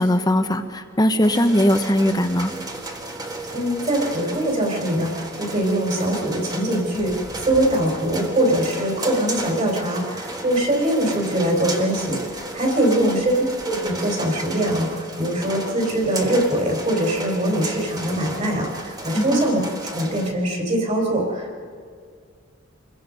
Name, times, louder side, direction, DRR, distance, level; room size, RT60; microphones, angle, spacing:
voice 1, 0.0-2.5 13.0-13.1 19.1-19.4, equal, 20° left, 8 dB, 1.1 m, -19 dB
sound 1, 1.2-20.3, right 2 dB, 20° right, 1.7 m, -33 dB
voice 2, 3.5-12.2 12.5-19.6 19.9-21.6, right 1 dB, 35° right, 1 dB, 4.4 m, -22 dB
27.5 x 21.5 x 5.4 m, 2.1 s
head